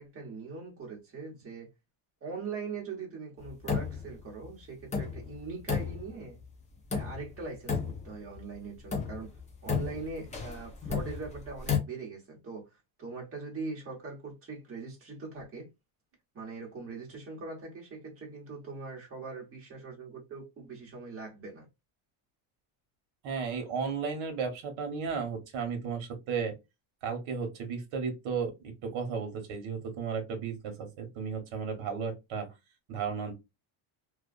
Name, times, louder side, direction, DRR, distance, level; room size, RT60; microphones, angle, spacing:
voice 1, 0.0-1.7 2.2-6.4 6.9-9.3 9.6-12.6 13.0-15.7 16.3-21.7, right 4 dB, 25° right, 1.4 m, -41 dB
sound 1, 3.4-4.2 4.4-4.5 4.9-6.4 6.9-7.4 7.7-8.4 8.9-11.8, left 6 dB, 15° left, 0.5 m, -33 dB
voice 2, 23.2-26.5 27.0-32.5 32.9-33.3, right 5 dB, 70° right, 1.3 m, -34 dB
2.7 x 2.3 x 2.5 m
cardioid pair, 150°, 49 cm